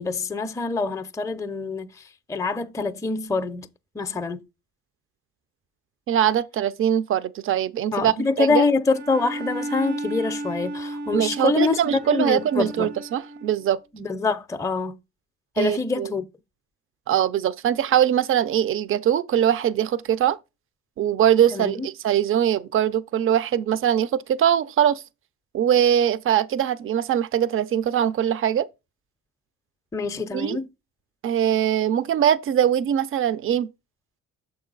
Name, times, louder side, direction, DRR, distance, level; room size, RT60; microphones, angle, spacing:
voice 1, 0.0-3.7 3.9-4.4 7.9-12.9 13.9-15.0 15.6-16.2 21.5-21.9 29.9-30.7, left 4 dB, 10° left, 0.4 m, -25 dB
voice 2, 6.1-8.6 11.1-13.8 15.6-16.1 17.1-20.4 21.0-25.0 25.5-28.7 30.3-30.6 31.2-33.7, right 10 dB, 45° right, 0.4 m, -22 dB
Bowed string instrument, 8.9-13.6, right 1 dB, 65° right, 0.9 m, -34 dB
6.6 x 4.7 x 3.8 m
cardioid pair, 90°, 30 cm